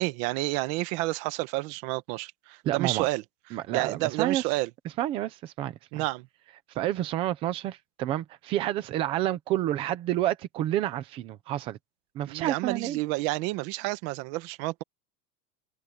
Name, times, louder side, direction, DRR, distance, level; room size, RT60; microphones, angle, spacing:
voice 1, 0.0-3.2 3.7-4.7 5.9-6.3 12.2-14.8, right 21 dB, 40° right, 1.3 m, -30 dB
voice 2, 2.6-3.1 3.5-4.4 5.0-6.0 6.7-11.8 12.1-13.0, right 13 dB, 15° right, 0.4 m, -29 dB
supercardioid pair, 180°, 45 cm